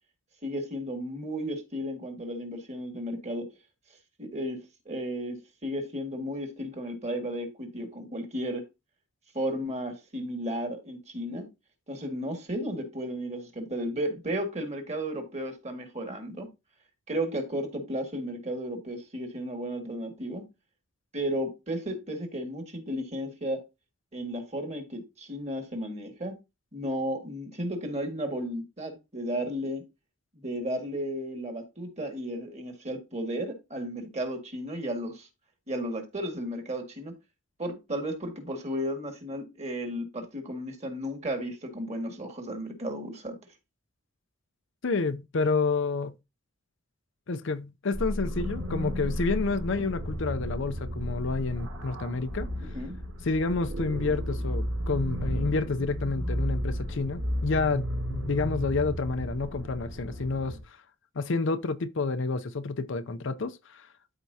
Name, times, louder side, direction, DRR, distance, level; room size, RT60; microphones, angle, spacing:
voice 1, 0.4-3.5 4.2-4.6 4.8-8.6 9.3-11.5 11.9-16.5 17.1-20.4 21.1-23.6 24.1-26.3 26.7-29.8 30.3-35.3 35.7-37.1 37.6-43.4 52.6-52.9, equal, 30° right, 1.8 m, -34 dB
voice 2, 44.8-46.2 47.3-52.5 53.2-60.8 61.2-63.9, left 3 dB, 60° left, 0.6 m, -29 dB
sound 1, 47.9-60.6, equal, 80° right, 2.7 m, -33 dB
13.0 x 4.5 x 2.8 m
head